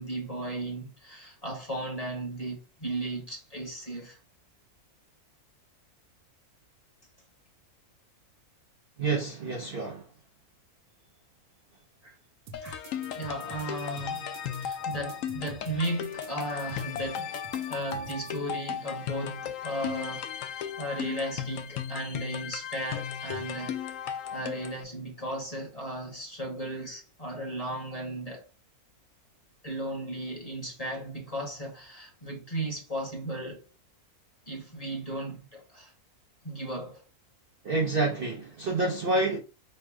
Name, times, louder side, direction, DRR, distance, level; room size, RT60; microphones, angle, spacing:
voice 1, 0.0-4.2 9.6-9.7 12.0-12.1 12.6-12.9 13.1-17.3 17.7-23.8 24.3-28.4 29.6-33.6 34.5-35.9 36.4-37.0, right 1 dB, 25° left, 1.3 m, -36 dB
voice 2, 9.0-10.0 37.6-39.4, right 3 dB, 45° right, 0.8 m, -28 dB
sound 1, 12.5-24.8, left 8 dB, 65° left, 0.9 m, -36 dB
sound 2, 12.5-18.4, right 3 dB, 85° right, 1.3 m, -47 dB
4.4 x 2.2 x 4.7 m
omnidirectional pair, 1.6 m